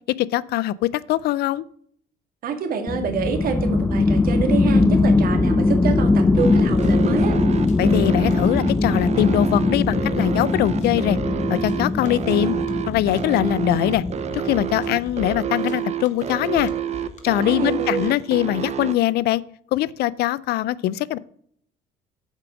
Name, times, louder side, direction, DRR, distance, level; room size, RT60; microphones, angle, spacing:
voice 1, 0.2-1.6 7.8-11.2 11.5-12.6 12.9-14.0 14.3-16.7 17.2-19.4 19.7-21.2, left 13 dB, 75° left, 20 dB, 0.5 m, -22 dB
voice 2, 2.4-7.4 17.3-18.2, right 6 dB, 60° right, 6 dB, 1.9 m, -27 dB
sound 1, 2.9-14.9, left 3 dB, 10° left, 0.3 m, -21 dB
sound 2, 5.9-17.2, left 4 dB, 45° left, 1.4 m, -39 dB
sound 3, 6.4-18.9, right 9 dB, 40° right, 0.8 m, -28 dB
8.1 x 5.3 x 6.0 m, 0.64 s
cardioid pair, 110°, 17 cm